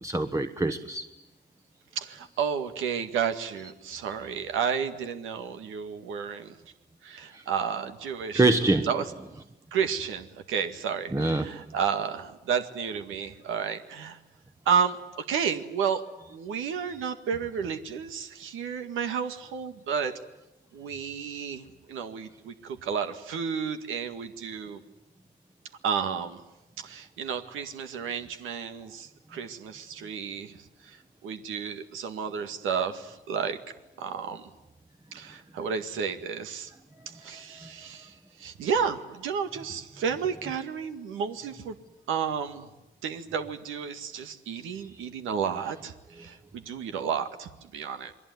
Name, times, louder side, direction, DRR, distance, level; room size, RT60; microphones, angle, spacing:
voice 1, 0.0-1.1 7.3-7.4 8.3-8.9 11.1-11.4, right 2 dB, 15° right, 7 dB, 1.1 m, -24 dB
voice 2, 2.0-6.6 7.0-8.5 8.8-9.1 9.7-14.2 14.7-16.0 16.3-20.2 20.7-24.8 25.8-26.4 26.8-33.6 34.0-34.5 35.1-36.7 37.1-41.8 42.1-42.7 43.0-48.1, right 7 dB, 85° right, 7 dB, 1.9 m, -32 dB
28.5 x 21.5 x 9.5 m, 0.96 s
cardioid pair, 90°, 20 cm